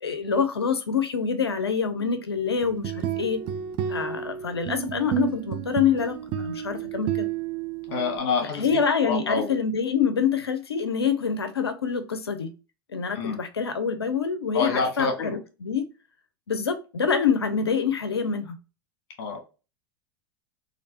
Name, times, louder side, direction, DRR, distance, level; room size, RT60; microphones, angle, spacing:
voice 1, 0.0-3.4 3.9-7.3 8.5-12.5 12.9-15.9 16.5-18.5, left 6 dB, 90° left, 0.6 m, -26 dB
sound 1, 2.6-8.2, right 9 dB, 40° right, 0.4 m, -31 dB
voice 2, 7.9-9.6 13.1-13.4 14.5-15.4 19.2-19.4, left 4 dB, 55° left, 1.4 m, -27 dB
3.2 x 2.6 x 2.7 m
hypercardioid pair, 90°, 13 cm